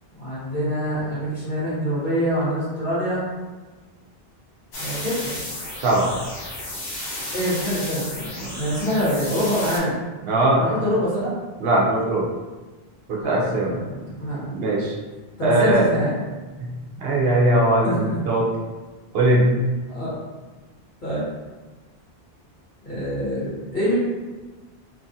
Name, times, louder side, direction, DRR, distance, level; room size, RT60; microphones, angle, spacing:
voice 1, 0.2-3.2 4.8-5.4 7.3-10.0 10.6-11.3 13.2-14.5 15.4-16.2 17.8-18.2 19.9-20.1 21.0-21.3 22.8-23.9, equal, 50° left, -10 dB, 1.4 m, -25 dB
sound 1, 4.7-9.8, left 1 dB, 75° left, 1.0 m, -33 dB
voice 2, 5.8-6.1 10.3-10.7 11.6-12.3 13.1-13.7 14.5-14.9 15.4-15.9 16.6-18.5 19.1-19.5, right 1 dB, 70° right, -2 dB, 0.8 m, -20 dB
2.9 x 2.5 x 2.6 m, 1.2 s
omnidirectional pair, 1.0 m